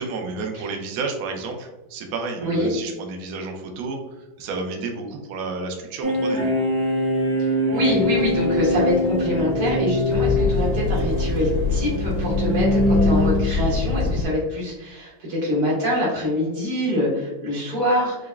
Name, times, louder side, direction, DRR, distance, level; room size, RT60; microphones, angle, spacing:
voice 1, 0.0-6.4, right 3 dB, 85° right, 3 dB, 0.7 m, -31 dB
sound 1, 6.0-13.6, left 1 dB, 50° right, 1.1 m, -23 dB
voice 2, 7.4-18.2, left 1 dB, 70° right, -5 dB, 2.2 m, -24 dB
sound 2, 7.8-14.3, left 4 dB, 75° left, 1.2 m, -26 dB
5.0 x 2.3 x 2.3 m, 1.1 s
omnidirectional pair, 2.3 m